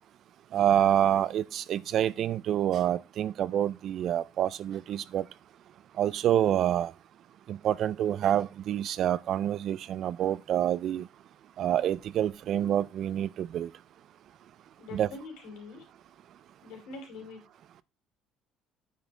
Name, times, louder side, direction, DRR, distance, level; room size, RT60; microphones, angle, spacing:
voice 1, 0.5-5.2 6.0-6.9 7.5-11.0 11.6-13.7 14.9-15.1, right 10 dB, 40° right, 0.3 m, -27 dB
voice 2, 14.8-15.8 16.6-17.4, left 3 dB, 70° left, 4.0 m, -44 dB
8.9 x 7.3 x 3.3 m
cardioid pair, 175°, 0 cm